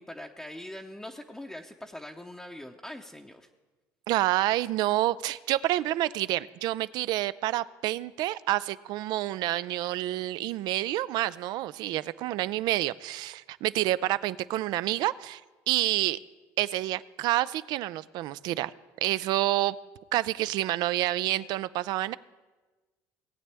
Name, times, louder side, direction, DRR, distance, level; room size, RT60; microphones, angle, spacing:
voice 1, 0.0-3.5, left 1 dB, 5° left, 1 dB, 0.7 m, -42 dB
voice 2, 4.1-15.4 15.7-16.2 16.6-18.7 19.0-19.8 20.1-22.2, right 15 dB, 65° right, 17 dB, 0.4 m, -28 dB
18.5 x 8.6 x 3.4 m, 1.2 s
supercardioid pair, 90°, 8 cm